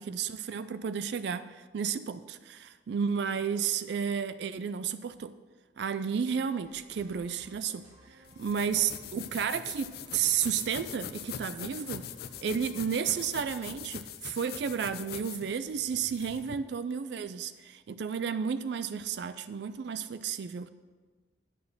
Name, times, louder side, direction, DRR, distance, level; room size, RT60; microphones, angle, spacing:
voice 1, 0.0-5.3 5.8-7.8 8.4-12.0 12.4-20.7, right 7 dB, 60° right, 13 dB, 0.3 m, -32 dB
sound 1, 6.6-13.8, equal, 35° right, 1.9 m, -57 dB
sound 2, 8.3-16.6, left 9 dB, 55° left, 0.4 m, -43 dB
10.5 x 4.4 x 6.8 m, 1.4 s
head